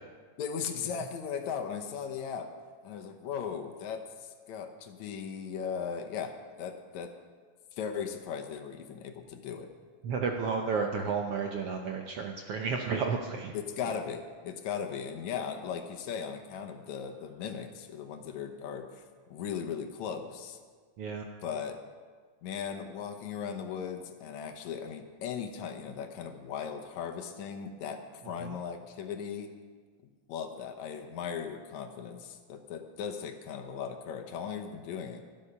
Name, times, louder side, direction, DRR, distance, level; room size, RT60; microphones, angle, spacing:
voice 1, 0.4-2.5 2.8-7.1 7.7-9.7 13.5-19.0 19.3-20.6 21.4-21.8 22.4-29.5 30.3-35.2, left 7 dB, 70° left, 6 dB, 2.1 m, -38 dB
voice 2, 10.0-13.5 21.0-21.3 28.4-28.6, right 5 dB, 70° right, 3 dB, 1.4 m, -32 dB
13.0 x 12.5 x 5.6 m, 1.5 s
omnidirectional pair, 3.6 m